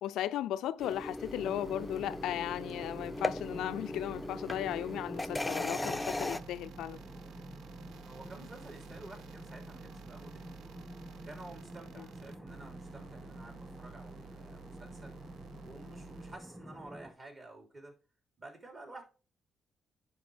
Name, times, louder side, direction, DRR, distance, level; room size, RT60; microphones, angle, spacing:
voice 1, 0.0-7.0 12.0-12.1, left 12 dB, 90° left, 0.3 m, -36 dB
sound 1, 0.8-6.4, left 2 dB, 15° left, 0.5 m, -38 dB
sound 2, 1.3-16.4, right 7 dB, 85° right, 0.6 m, -53 dB
sound 3, 1.4-17.1, equal, 10° right, 1.5 m, -49 dB
voice 2, 8.0-10.8 11.2-15.2 15.6-18.0 18.4-19.0, right 2 dB, 40° right, 3.2 m, -51 dB
9.9 x 5.0 x 3.4 m
cardioid pair, 75°, 0 cm